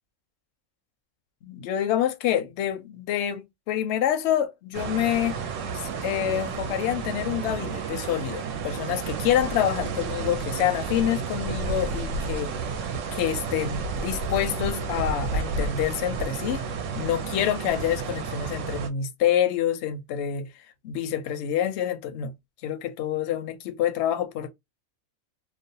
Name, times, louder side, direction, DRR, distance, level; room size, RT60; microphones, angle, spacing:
voice 1, 1.4-5.4 5.7-12.5 13.1-16.6 17.0-20.5 20.8-22.3 22.6-24.5, left 10 dB, 65° left, 0.7 m, -27 dB
sound 1, 4.7-18.9, right 5 dB, 70° right, 0.9 m, -31 dB
2.5 x 2.0 x 2.6 m
omnidirectional pair, 1.5 m